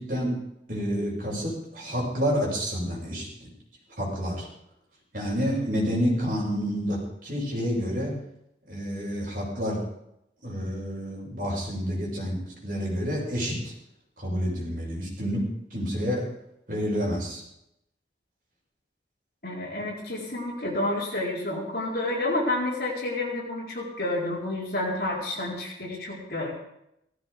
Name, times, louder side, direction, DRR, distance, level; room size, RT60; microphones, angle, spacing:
voice 1, 0.0-3.5 4.0-4.5 5.1-8.1 8.7-9.8 10.4-13.7 14.2-15.4 15.7-16.3 16.7-17.4, equal, 50° right, -4 dB, 6.9 m, -29 dB
voice 2, 19.4-26.5, left 2 dB, 55° left, -3 dB, 4.5 m, -29 dB
17.0 x 15.0 x 5.2 m, 0.80 s
head